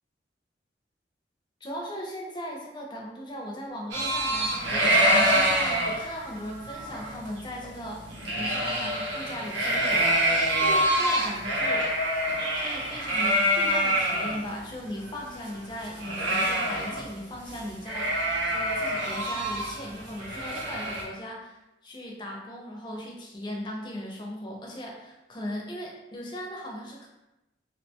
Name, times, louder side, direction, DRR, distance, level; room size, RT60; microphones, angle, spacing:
voice 1, 1.6-11.9 12.5-18.1 18.5-21.6 21.8-27.1, equal, 25° left, -1 dB, 0.4 m, -38 dB
sound 1, 3.9-14.4 14.7-14.8 15.0-17.2 17.5-17.6 17.9-21.0, right 1 dB, 90° right, 0.7 m, -26 dB
2.7 x 2.1 x 2.8 m, 0.96 s
head